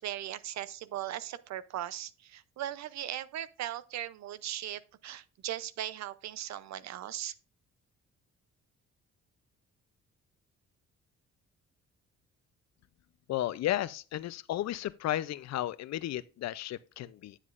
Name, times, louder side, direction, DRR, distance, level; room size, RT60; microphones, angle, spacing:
voice 1, 0.0-7.3, right 12 dB, 65° right, 0.6 m, -38 dB
voice 2, 13.3-17.4, left 13 dB, 60° left, 0.5 m, -33 dB
9.8 x 7.3 x 2.4 m
cardioid pair, 90°, 30 cm